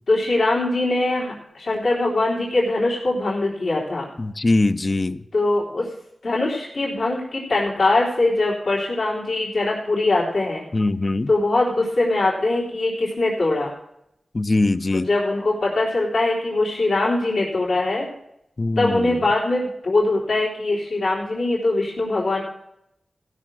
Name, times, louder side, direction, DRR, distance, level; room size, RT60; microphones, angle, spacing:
voice 1, 0.1-4.1 5.3-5.9 6.2-10.6 11.3-13.7 14.9-18.1 18.8-22.4, left 2 dB, 75° left, -6 dB, 3.8 m, -22 dB
voice 2, 4.2-5.2 10.7-11.3 14.3-15.1 18.6-19.2, left 2 dB, 40° left, 12 dB, 0.6 m, -21 dB
16.5 x 6.4 x 6.2 m, 0.80 s
wide cardioid pair, 85°, 0 cm